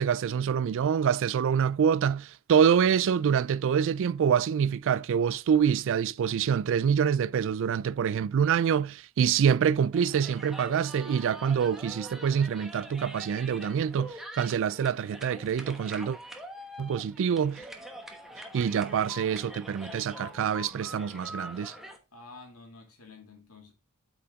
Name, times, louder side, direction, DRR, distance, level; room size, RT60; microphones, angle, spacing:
voice 1, 0.0-16.2 16.8-17.7 18.5-21.7, right 7 dB, 60° right, 0.3 m, -26 dB
sound 1, 9.9-22.0, equal, ahead, 1.1 m, -44 dB
voice 2, 22.1-23.7, left 3 dB, 75° left, 2.2 m, -50 dB
8.5 x 4.8 x 3.6 m
head